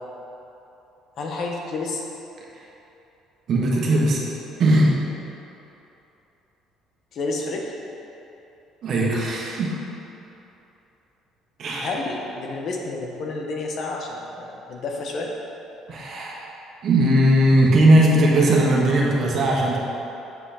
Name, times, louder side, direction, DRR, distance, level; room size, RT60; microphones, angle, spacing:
voice 1, 1.2-2.0 7.1-7.6 11.8-15.3, left 3 dB, 55° left, 0 dB, 1.0 m, -30 dB
voice 2, 3.5-4.2 4.6-5.0 8.8-9.8 11.6-11.9 15.9-16.5 16.8-19.8, right 1 dB, 50° right, -3 dB, 1.4 m, -18 dB
7.2 x 5.8 x 4.3 m, 3.0 s
cardioid pair, 110°, 0 cm